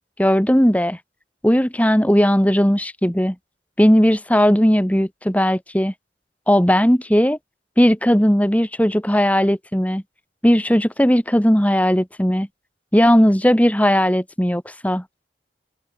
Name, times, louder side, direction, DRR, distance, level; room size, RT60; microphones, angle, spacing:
voice 1, 0.2-1.0 1.4-3.4 3.8-5.9 6.5-7.4 7.8-10.0 10.4-12.5 12.9-15.0, equal, 10° left, 2.4 m, -17 dB
head